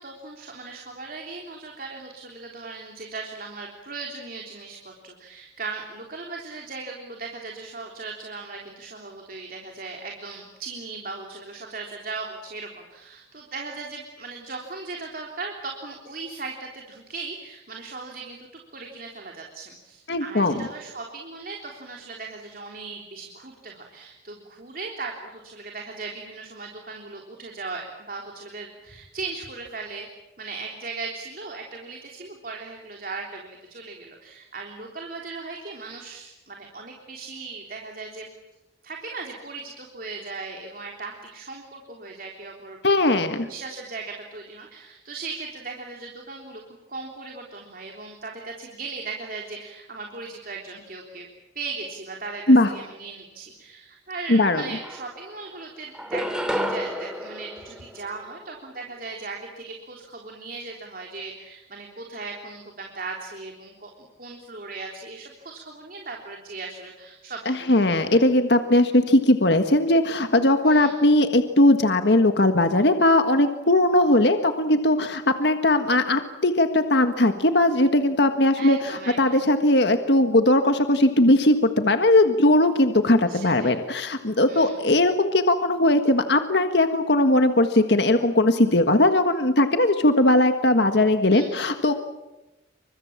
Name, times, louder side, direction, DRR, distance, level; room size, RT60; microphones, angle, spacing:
voice 1, 0.0-30.1 30.4-38.3 38.8-42.8 43.1-51.3 51.6-68.2 70.6-70.9 78.5-79.4 83.3-83.8 84.4-84.8 91.3-91.7, right 3 dB, 50° right, 1 dB, 3.5 m, -38 dB
voice 2, 20.1-20.6 42.8-43.5 52.5-52.7 54.3-54.6 67.4-91.9, left 1 dB, 70° left, 7 dB, 1.6 m, -19 dB
sound 1, 54.3-54.4 54.7-55.5 55.9-58.5, equal, 5° right, 2.9 m, -31 dB
29.0 x 25.5 x 7.4 m, 1.0 s
head